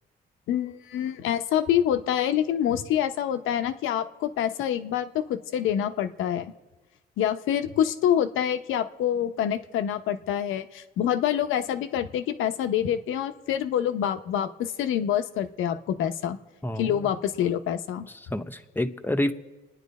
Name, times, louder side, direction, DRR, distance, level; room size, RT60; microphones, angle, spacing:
voice 1, 0.5-6.5 7.2-16.4 16.8-18.1, left 10 dB, 90° left, 8 dB, 0.8 m, -26 dB
voice 2, 16.6-17.1 18.1-19.3, left 1 dB, 10° left, 8 dB, 0.9 m, -29 dB
29.0 x 9.9 x 4.2 m, 1.2 s
cardioid pair, 90°, 20 cm